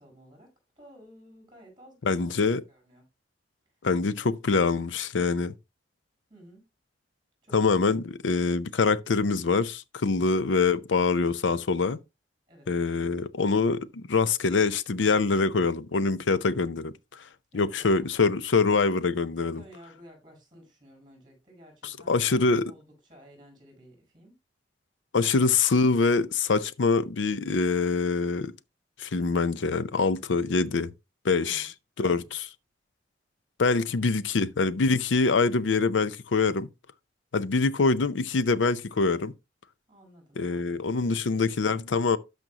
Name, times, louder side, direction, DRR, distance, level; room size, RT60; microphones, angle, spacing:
voice 1, 0.0-3.1 6.3-6.7 7.4-7.8 10.1-10.4 12.5-13.1 17.5-18.0 19.4-24.4 25.2-25.5 31.4-31.7 32.0-32.3 33.8-34.3 39.9-41.5, equal, 25° right, 5.3 m, -54 dB
voice 2, 2.0-2.6 3.8-5.5 7.5-12.0 12.7-17.2 17.5-19.6 21.8-22.7 25.1-28.5 29.0-30.9 31.2-31.7 32.0-32.5 33.6-36.7 37.3-39.3 40.4-42.2, left 4 dB, 85° left, 0.6 m, -24 dB
12.5 x 5.2 x 2.9 m
head